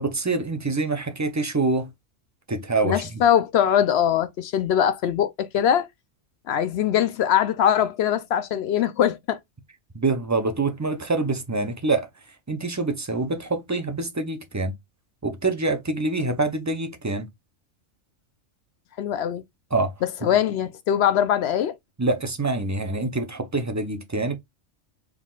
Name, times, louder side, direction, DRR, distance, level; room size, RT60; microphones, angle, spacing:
voice 1, 0.0-1.9 2.5-3.2 9.9-12.1 12.5-14.7 15.2-17.3 19.7-19.9 20.2-20.3 22.0-24.4, right 3 dB, 25° right, 0.3 m, -25 dB
voice 2, 2.8-5.9 6.5-9.4 19.0-19.4 20.0-21.7, left 9 dB, 65° left, 0.7 m, -22 dB
4.6 x 3.7 x 2.4 m
omnidirectional pair, 1.3 m